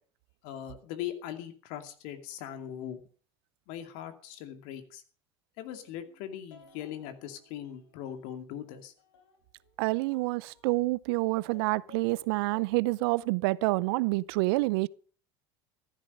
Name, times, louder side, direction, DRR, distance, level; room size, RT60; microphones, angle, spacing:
voice 1, 0.4-3.0 3.7-5.0 5.6-8.9, left 10 dB, 65° left, 2.4 m, -40 dB
sound 1, 5.7-8.5 8.8-10.8 11.3-12.9 13.2-13.3, left 1 dB, 80° left, 4.0 m, -58 dB
voice 2, 9.8-14.9, right 22 dB, 70° right, 0.6 m, -28 dB
14.5 x 11.5 x 5.5 m
hypercardioid pair, 75°, 14 cm